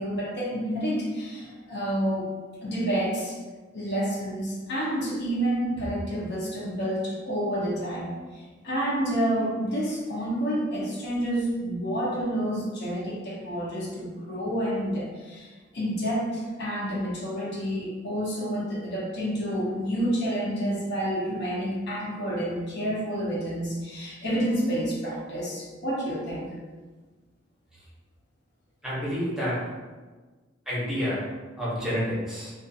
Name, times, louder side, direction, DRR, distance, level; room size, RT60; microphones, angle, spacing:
voice 1, 0.0-2.2 2.6-3.4 3.7-26.5, equal, 60° left, -5 dB, 0.6 m, -29 dB
voice 2, 28.8-29.6 30.7-31.2 31.6-32.5, equal, 5° right, -9 dB, 0.8 m, -28 dB
2.4 x 2.4 x 2.6 m, 1.3 s
head